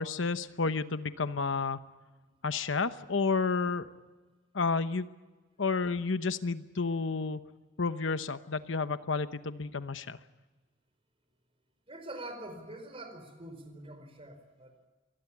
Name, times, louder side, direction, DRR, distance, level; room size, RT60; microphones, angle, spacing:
voice 1, 0.0-1.8 2.4-3.9 4.5-5.1 5.6-7.4 7.8-10.2, left 4 dB, 80° left, 11 dB, 1.0 m, -31 dB
voice 2, 11.9-14.7, right 1 dB, 30° right, 8 dB, 4.6 m, -45 dB
25.0 x 19.0 x 8.5 m, 1.3 s
head